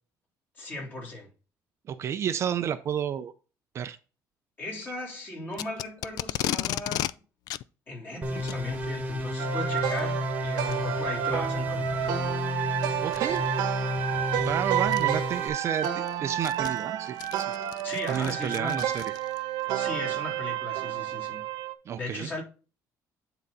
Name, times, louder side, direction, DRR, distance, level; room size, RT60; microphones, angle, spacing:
voice 1, 0.6-1.3 4.6-7.2 7.9-12.1 17.8-18.9 19.7-21.4 22.0-22.4, left 2 dB, 30° left, 3.5 m, -37 dB
voice 2, 1.9-3.3 3.7-4.0 13.0-13.4 14.4-17.5 18.1-19.0 21.9-22.3, right 9 dB, 40° right, 0.5 m, -31 dB
Packing tape duct tape, 5.5-7.1 7.5-7.6 8.4-8.6 9.8-10.0 10.7-10.8 11.4-11.5 13.1-13.4 14.4-14.5 14.9-15.0 15.5-19.4, left 14 dB, 70° left, 0.4 m, -34 dB
sound 1, 8.2-15.5, left 1 dB, 20° right, 1.3 m, -31 dB
sound 2, 9.4-21.7, right 11 dB, 85° right, 1.1 m, -30 dB
9.7 x 4.0 x 4.0 m
cardioid pair, 155°, 7 cm